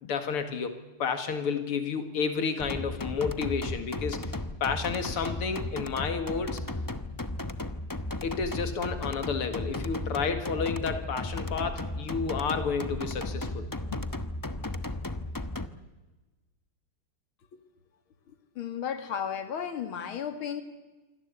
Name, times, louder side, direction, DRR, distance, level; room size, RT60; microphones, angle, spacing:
voice 1, 0.0-6.6 8.2-14.0, left 5 dB, 90° left, 8 dB, 2.9 m, -31 dB
sound 1, 2.6-15.7, left 2 dB, 25° left, 0.4 m, -35 dB
voice 2, 18.6-20.6, left 8 dB, 70° left, 8 dB, 2.9 m, -34 dB
27.5 x 24.5 x 8.3 m, 1.2 s
omnidirectional pair, 2.4 m